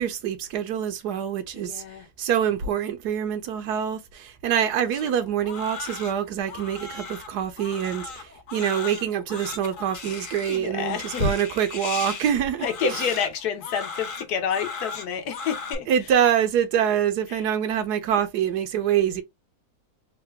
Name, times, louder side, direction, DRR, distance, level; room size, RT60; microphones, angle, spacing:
voice 1, 0.0-1.8 2.2-12.7 15.9-19.2, right 9 dB, 90° right, 1.3 m, -25 dB
voice 2, 1.6-2.1 10.5-11.4 12.6-15.9 17.3-17.4, left 6 dB, 80° left, 1.3 m, -28 dB
Crying sobbing, 4.9-15.7, left 5 dB, 45° left, 0.7 m, -37 dB
3.8 x 2.2 x 3.2 m
omnidirectional pair, 1.7 m